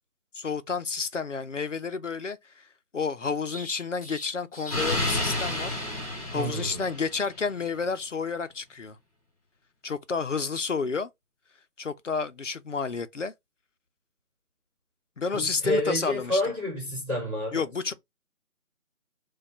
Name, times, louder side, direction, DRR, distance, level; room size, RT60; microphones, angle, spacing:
voice 1, 0.3-2.7 2.9-6.0 6.3-9.0 9.8-11.1 11.8-13.3 15.2-16.4 17.5-17.9, left 5 dB, 55° left, 0.5 m, -30 dB
Explosion, 3.5-7.3, left 1 dB, 25° left, 1.1 m, -31 dB
voice 2, 6.3-6.8 15.3-17.7, left 1 dB, 5° right, 2.3 m, -29 dB
4.9 x 2.3 x 4.1 m
figure-of-eight pair, 170°, 45 cm